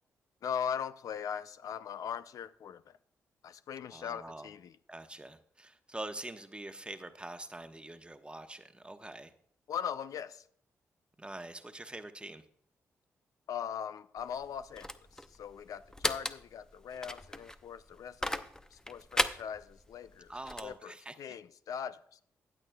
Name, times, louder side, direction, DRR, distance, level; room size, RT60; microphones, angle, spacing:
voice 1, 0.4-3.0 3.4-4.8 9.7-10.4 13.5-20.3 20.6-22.2, left 8 dB, 65° left, 0.4 m, -40 dB
voice 2, 3.9-4.5 4.9-9.3 11.2-12.4 20.3-21.1, right 2 dB, 15° right, 1.0 m, -44 dB
sound 1, 14.2-20.7, left 1 dB, 10° left, 0.7 m, -37 dB
15.0 x 8.9 x 2.3 m
supercardioid pair, 45°, 6 cm